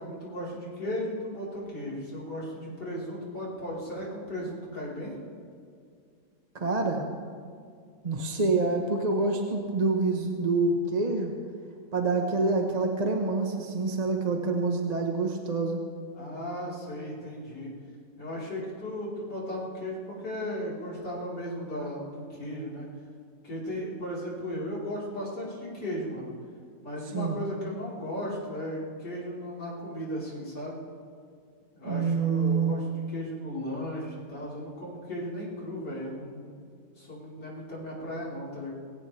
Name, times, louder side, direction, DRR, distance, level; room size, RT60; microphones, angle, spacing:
voice 1, 0.0-5.1 16.1-17.7 18.2-22.9 23.4-26.3 26.8-30.8 31.7-36.6 37.0-38.7, equal, 60° left, -6 dB, 4.8 m, -36 dB
voice 2, 6.5-7.0 8.0-11.3 11.9-15.8 27.1-27.4 31.8-32.7, right 3 dB, 25° right, 2 dB, 1.0 m, -27 dB
22.5 x 16.5 x 3.4 m, 2.2 s
omnidirectional pair, 2.0 m